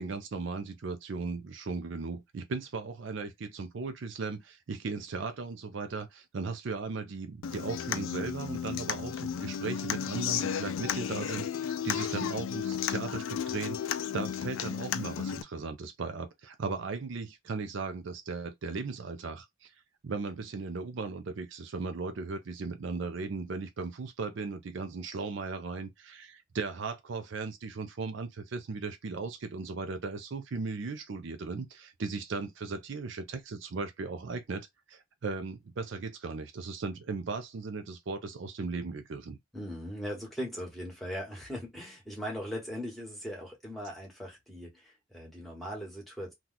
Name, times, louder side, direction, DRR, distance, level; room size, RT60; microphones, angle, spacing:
voice 1, 0.0-19.7 20.0-39.4, right 4 dB, 60° right, 0.4 m, -37 dB
Human voice / Acoustic guitar, 7.4-15.4, left 8 dB, 70° left, 0.3 m, -33 dB
voice 2, 39.5-46.3, equal, ahead, 1.1 m, -39 dB
2.9 x 2.3 x 3.8 m
head